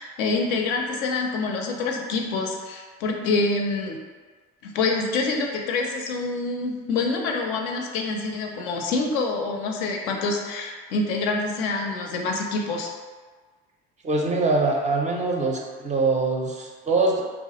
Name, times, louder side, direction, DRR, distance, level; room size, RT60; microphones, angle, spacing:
voice 1, 0.0-4.0 4.6-12.9, left 3 dB, 70° left, 1 dB, 0.5 m, -26 dB
voice 2, 14.0-17.2, right 3 dB, 25° right, 0 dB, 0.4 m, -23 dB
2.2 x 2.0 x 2.8 m, 1.4 s
hypercardioid pair, 65°, 30 cm